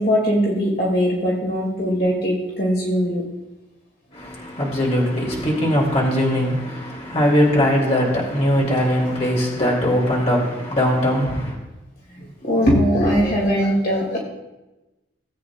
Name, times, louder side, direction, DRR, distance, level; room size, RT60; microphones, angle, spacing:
voice 1, 0.0-3.2 12.1-14.2, equal, 50° left, 2.3 m, -20 dB
voice 2, 4.1-11.6, equal, 35° left, 2.5 m, -20 dB
18.0 x 8.4 x 2.4 m
head